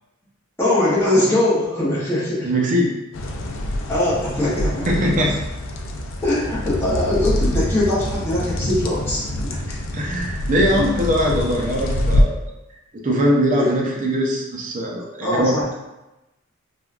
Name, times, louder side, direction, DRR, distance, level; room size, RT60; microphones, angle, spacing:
voice 1, 0.6-2.5 3.9-4.9 6.2-9.5 13.6-13.8 15.2-15.7, left 1 dB, 10° left, -10 dB, 0.7 m, -21 dB
voice 2, 2.4-3.0 4.9-5.4 9.9-12.4 13.0-15.5, equal, 40° right, -1 dB, 0.5 m, -21 dB
sound 1, 3.1-12.2, left 1 dB, 70° left, 0.4 m, -25 dB
3.4 x 2.2 x 2.4 m, 0.97 s
head